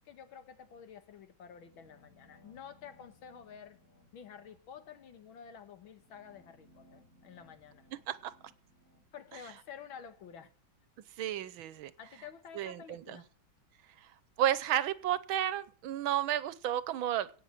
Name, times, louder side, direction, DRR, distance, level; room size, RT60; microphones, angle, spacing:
voice 1, 0.1-3.8 4.1-7.9 9.1-10.5 12.0-13.3, left 7 dB, 75° left, 2.1 m, -50 dB
sound 1, 1.5-10.4, left 1 dB, 30° left, 3.2 m, -65 dB
voice 2, 11.2-11.9 12.6-13.2 14.0-14.1 14.4-17.3, right 11 dB, 85° right, 1.6 m, -32 dB
17.5 x 6.8 x 7.3 m
omnidirectional pair, 2.2 m